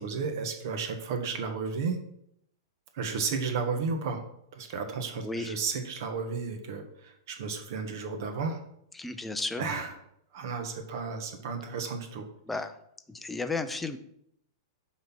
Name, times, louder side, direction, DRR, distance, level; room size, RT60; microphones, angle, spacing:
voice 1, 0.0-2.0 2.9-4.2 4.5-8.6 9.6-9.9 10.3-12.2 12.5-12.6, right 5 dB, 55° right, 6 dB, 1.3 m, -33 dB
voice 2, 5.2-5.6 8.9-9.7 12.5-12.7 13.1-14.0, left 3 dB, 5° left, 8 dB, 0.6 m, -33 dB
9.2 x 4.2 x 6.0 m, 0.74 s
supercardioid pair, 155°, 2 cm